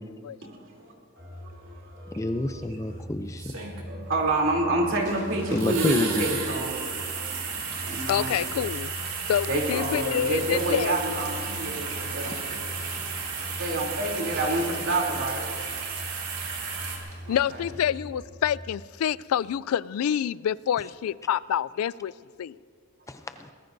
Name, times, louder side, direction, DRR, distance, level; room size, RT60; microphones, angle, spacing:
voice 1, 0.8-3.0 3.9-6.8 7.8-8.4 9.5-12.3 13.6-15.4 17.2-17.6, right 2 dB, 60° right, 3.1 m, -28 dB
sound 1, 1.2-18.7, left 1 dB, 20° right, 1.9 m, -42 dB
voice 2, 2.2-3.5 5.5-6.3 7.4-7.8 12.2-12.4 23.1-23.5, left 1 dB, 15° left, 0.5 m, -29 dB
sound 2, 2.4-2.5 3.4-4.1 5.6-17.0, right 5 dB, 80° right, 2.7 m, -33 dB
sound 3, 4.9-6.2 6.7-6.8 7.2-8.4 9.9-15.2 16.2-17.9 18.2-18.6, right 1 dB, 40° right, 4.4 m, -46 dB
voice 3, 8.1-8.9 9.3-11.0 17.3-22.1 22.4-22.5, left 9 dB, 80° left, 0.3 m, -27 dB
23.0 x 19.0 x 2.7 m
head